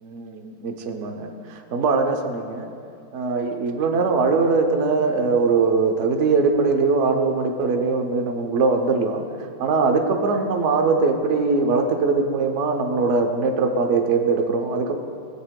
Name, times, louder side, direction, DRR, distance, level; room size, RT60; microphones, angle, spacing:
voice 1, 0.0-2.7 3.1-9.2 9.6-15.0, right 4 dB, 65° right, 4 dB, 0.7 m, -21 dB
21.0 x 7.3 x 2.2 m, 2.4 s
omnidirectional pair, 2.2 m